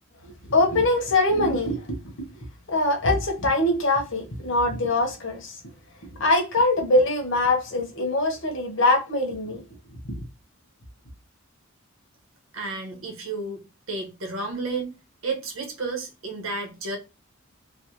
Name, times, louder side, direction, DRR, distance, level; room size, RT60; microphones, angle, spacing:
voice 1, 0.2-2.0 2.7-5.5 6.2-9.6, left 2 dB, 65° left, 1.0 m, -23 dB
voice 2, 12.5-13.6 13.9-14.9 15.2-17.0, right 3 dB, 90° right, 1.0 m, -31 dB
3.3 x 2.1 x 2.9 m
head